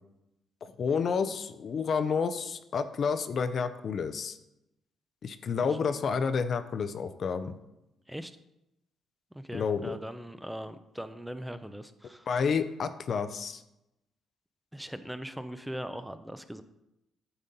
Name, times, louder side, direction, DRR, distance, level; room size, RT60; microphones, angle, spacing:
voice 1, 0.6-4.4 5.2-7.5 9.5-10.0 12.3-13.6, left 5 dB, 55° left, 11 dB, 0.5 m, -30 dB
voice 2, 9.3-12.3 14.7-16.6, equal, 5° right, 11 dB, 0.5 m, -40 dB
8.7 x 4.2 x 5.2 m, 0.89 s
cardioid pair, 90°, 0 cm